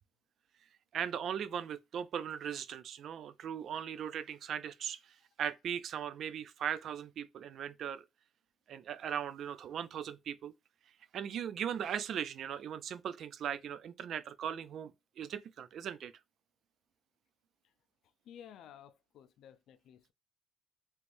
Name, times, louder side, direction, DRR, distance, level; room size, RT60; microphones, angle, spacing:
voice 1, 0.9-5.0 5.4-8.0 8.7-10.5 11.1-14.9 15.2-16.1, right 8 dB, 65° right, 0.4 m, -38 dB
voice 2, 18.2-20.1, left 9 dB, 75° left, 0.4 m, -54 dB
3.2 x 3.1 x 2.5 m
cardioid pair, 110°, 0 cm